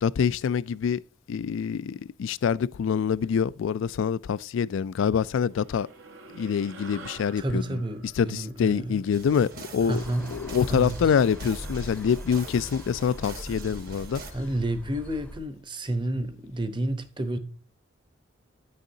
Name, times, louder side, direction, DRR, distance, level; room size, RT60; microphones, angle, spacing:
voice 1, 0.0-1.0 1.3-5.9 6.3-14.2, left 7 dB, 65° left, 0.3 m, -26 dB
sound 1, 5.5-10.2, right 3 dB, 70° right, 1.1 m, -48 dB
voice 2, 7.4-9.0 9.9-10.3 10.7-11.0 14.3-17.4, right 1 dB, 25° right, 0.8 m, -30 dB
sound 2, 9.1-14.3, right 3 dB, 50° right, 1.2 m, -43 dB
sound 3, 9.9-15.4, equal, 5° left, 0.7 m, -41 dB
9.0 x 6.4 x 2.8 m
head